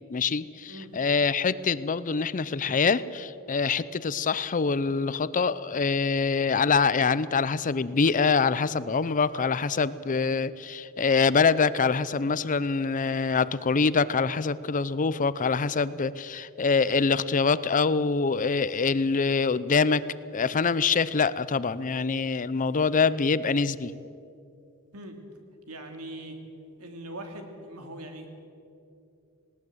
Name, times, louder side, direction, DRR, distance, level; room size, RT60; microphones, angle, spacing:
voice 1, 0.1-20.0 20.3-23.9, left 5 dB, 35° left, 17 dB, 0.6 m, -25 dB
voice 2, 25.7-26.4 26.8-28.5, right 1 dB, 90° right, 5 dB, 2.8 m, -41 dB
19.5 x 18.5 x 7.9 m, 2.6 s
head